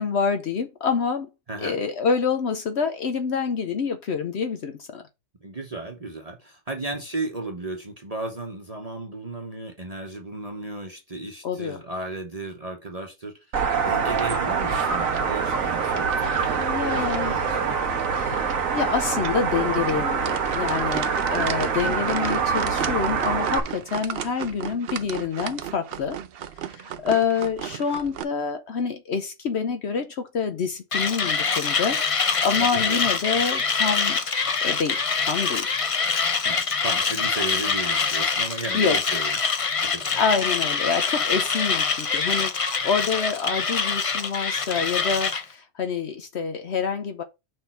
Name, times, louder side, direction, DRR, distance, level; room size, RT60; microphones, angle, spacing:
voice 1, 0.0-1.3 1.6-5.0 11.4-11.8 16.6-17.5 17.8-26.2 26.7-34.2 34.6-35.8 38.7-39.0 40.2-47.2, left 6 dB, 60° left, 1.0 m, -27 dB
voice 2, 1.5-1.8 5.4-13.3 13.8-17.9 32.6-33.1 36.4-39.4 39.8-40.2, right 2 dB, 30° right, 1.0 m, -35 dB
sound 1, 13.5-23.6, right 5 dB, 85° right, 1.5 m, -25 dB
sound 2, 20.2-28.2, right 9 dB, 60° right, 0.7 m, -34 dB
Mechanisms, 30.9-45.4, left 5 dB, 40° left, 0.5 m, -25 dB
6.2 x 3.5 x 5.7 m
omnidirectional pair, 1.4 m